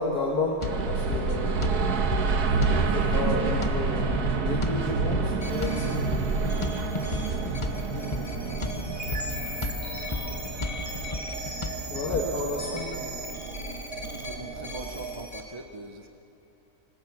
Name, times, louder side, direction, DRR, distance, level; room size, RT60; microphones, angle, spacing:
voice 1, 0.0-2.1 2.5-6.1 10.3-10.4 11.9-13.1, left 3 dB, 80° left, -1 dB, 2.1 m, -32 dB
sound 1, 0.6-12.2, left 3 dB, 30° left, 0.6 m, -35 dB
sound 2, 0.6-15.3, right 4 dB, 85° right, 1.7 m, -29 dB
sound 3, 5.4-15.4, left 1 dB, 10° left, 2.1 m, -40 dB
voice 2, 6.3-9.1 12.0-13.0 14.0-16.1, right 2 dB, 25° right, 5 dB, 0.6 m, -43 dB
25.0 x 19.0 x 6.0 m, 2.8 s
omnidirectional pair, 1.6 m